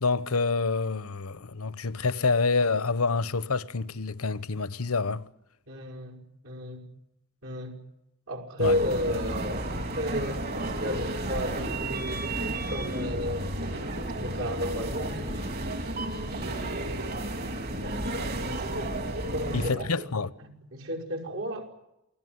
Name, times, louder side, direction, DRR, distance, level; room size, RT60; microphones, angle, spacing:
voice 1, 0.0-5.2 8.6-8.8 19.5-20.3, left 4 dB, 90° left, 1.0 m, -27 dB
voice 2, 5.7-6.2 6.4-6.9 7.4-7.8 8.3-13.6 14.2-15.6 16.3-17.6 18.4-18.7 19.3-20.0 20.4-21.7, equal, 70° right, 5.7 m, -33 dB
sound 1, 8.6-19.7, right 1 dB, 50° right, 4.0 m, -32 dB
28.5 x 19.0 x 9.6 m
head